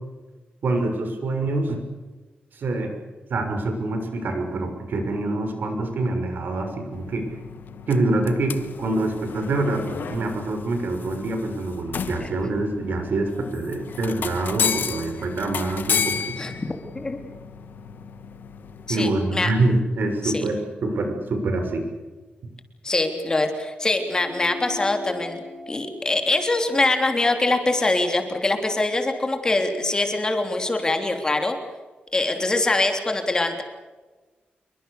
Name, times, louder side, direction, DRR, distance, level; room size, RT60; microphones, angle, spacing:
voice 1, 0.6-1.8 2.5-2.9 3.3-7.3 7.9-16.4 18.9-21.8, right 2 dB, 65° right, 6 dB, 6.5 m, -25 dB
sound 1, 6.9-18.9, left 7 dB, 70° left, 1.4 m, -33 dB
sound 2, 8.4-10.2, left 4 dB, 90° left, 7.7 m, -38 dB
voice 2, 16.4-17.3 18.9-19.5 20.2-20.4 22.8-25.4 25.7-31.6 32.1-33.6, left 2 dB, 20° left, 5 dB, 3.3 m, -23 dB
sound 3, 24.0-28.8, left 3 dB, 15° right, 8.0 m, -41 dB
27.5 x 24.0 x 6.7 m, 1.3 s
wide cardioid pair, 180°, 3 cm